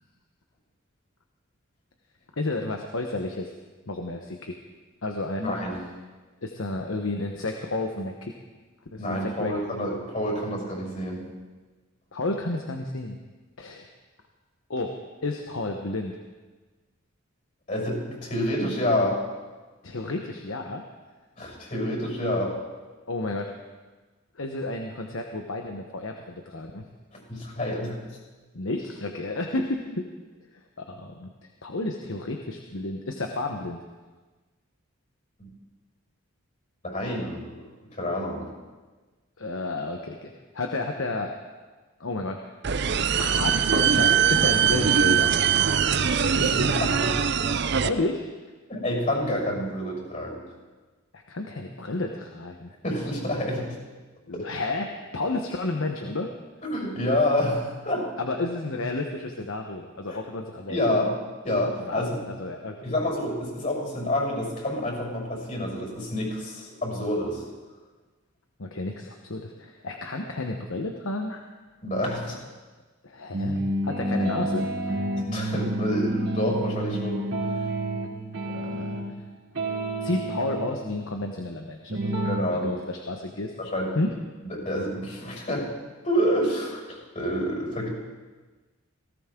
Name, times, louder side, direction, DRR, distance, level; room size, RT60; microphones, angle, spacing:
voice 1, 2.4-3.5 3.9-4.5 5.0-5.6 6.4-8.3 8.9-9.5 12.1-13.2 13.6-13.9 14.7-14.9 15.2-16.1 19.8-20.8 23.1-23.5 24.3-26.8 28.5-30.1 30.8-31.3 31.6-33.8 39.4-41.3 42.0-42.5 43.2-45.3 47.8-48.2 51.1-52.7 54.3-56.3 58.2-60.8 61.9-62.0 62.4-62.8 68.6-71.4 72.2-72.4 73.0-74.9 78.5-79.0 80.0-83.5 83.9-84.1, left 2 dB, 80° left, 3 dB, 1.1 m, -31 dB
voice 2, 5.4-5.8 9.0-11.2 17.7-19.2 21.4-22.5 27.1-28.0 35.4-35.5 36.8-37.6 37.9-38.5 46.3-47.2 48.7-50.4 52.8-53.7 54.3-54.5 56.6-58.1 60.1-60.2 60.7-61.1 61.4-62.2 62.8-67.5 71.8-72.4 75.1-77.7 82.2-82.8 83.6-83.9 84.4-85.7 86.0-87.9, left 1 dB, 40° left, -2 dB, 6.5 m, -28 dB
sound 1, 42.6-47.9, right 8 dB, 55° right, 0.6 m, -22 dB
sound 2, 73.3-79.2 79.5-80.7 81.9-82.4, right 1 dB, 75° right, 3.0 m, -29 dB
19.0 x 17.0 x 3.8 m, 1.3 s
head